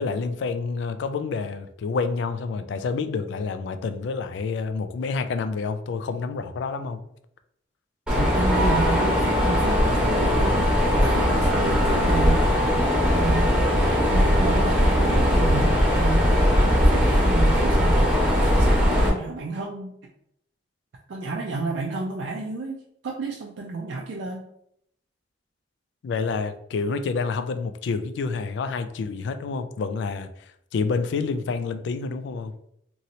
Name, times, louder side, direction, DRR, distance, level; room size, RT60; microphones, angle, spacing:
voice 1, 0.0-7.0 26.0-30.3 30.7-32.5, left 4 dB, 65° left, 0.3 m, -28 dB
Mechanisms, 8.1-19.1, equal, 5° right, 1.0 m, -20 dB
voice 2, 8.1-12.7 13.1-16.5 16.9-20.0 21.1-22.8 23.0-24.5, right 3 dB, 70° right, 0.4 m, -31 dB
3.0 x 2.8 x 2.6 m
head